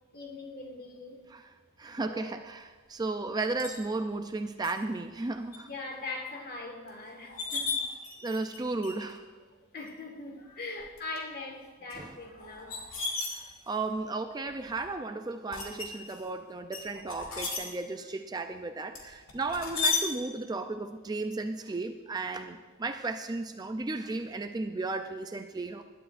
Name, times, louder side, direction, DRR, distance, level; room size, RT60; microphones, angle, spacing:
voice 1, 0.1-1.2 2.0-2.4 5.6-7.8 9.7-13.0 16.3-16.4, left 3 dB, 45° left, 1.6 m, -41 dB
voice 2, 1.8-5.7 8.2-9.2 12.0-12.2 13.3-25.8, right 3 dB, 20° right, 0.4 m, -34 dB
sound 1, 3.6-3.8 4.6-4.7 5.2-5.6 6.0-6.1 6.9-7.0 7.2-8.6 8.8-9.2 9.9-10.0 10.8-11.2 11.9-13.9 14.5-14.9 15.5-16.2 16.7-17.6 18.9-20.0, left 4 dB, 70° left, 2.3 m, -34 dB
20.5 x 12.0 x 2.5 m
head